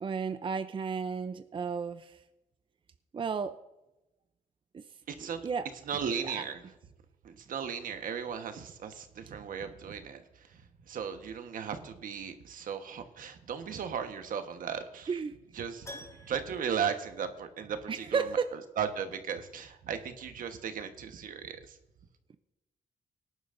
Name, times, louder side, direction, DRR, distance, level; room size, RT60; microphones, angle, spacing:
voice 1, 0.0-2.2 3.1-3.5 4.7-4.8 5.4-5.7 6.2-6.4 15.1-15.4 17.9-18.5, right 5 dB, 35° right, 10 dB, 0.6 m, -33 dB
voice 2, 5.1-5.4 5.9-6.6 7.2-10.2 10.5-10.6 10.9-15.1 15.5-18.3 18.8-21.8, right 7 dB, 75° right, 7 dB, 1.3 m, -36 dB
Keyboard (musical), 15.8-17.9 18.2-18.3 21.0-21.1 21.3-21.4, left 1 dB, 20° left, 4.2 m, -50 dB
18.5 x 11.0 x 2.6 m, 0.97 s
cardioid pair, 80°, 14 cm